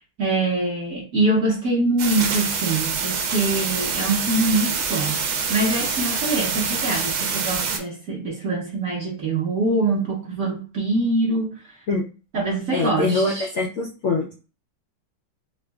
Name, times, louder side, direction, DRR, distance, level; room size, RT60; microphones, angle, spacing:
voice 1, 0.2-5.2 5.5-11.5 12.3-13.5, right 2 dB, 55° right, -3 dB, 1.1 m, -24 dB
sound 1, 2.0-7.8, right 5 dB, 85° right, 1.6 m, -25 dB
voice 2, 12.7-14.3, left 3 dB, 75° left, -2 dB, 0.7 m, -23 dB
5.0 x 2.4 x 2.3 m, 0.34 s
omnidirectional pair, 2.2 m